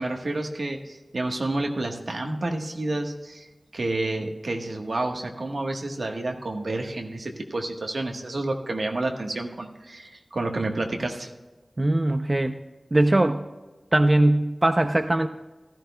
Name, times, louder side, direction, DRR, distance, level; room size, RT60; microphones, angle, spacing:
voice 1, 0.0-3.5 3.7-11.3, right 2 dB, 80° right, 2 dB, 1.2 m, -29 dB
voice 2, 11.8-12.6 12.9-13.4 13.9-15.3, right 1 dB, 40° right, 8 dB, 0.5 m, -20 dB
15.0 x 13.0 x 2.2 m, 1.2 s
wide cardioid pair, 60°, 0 cm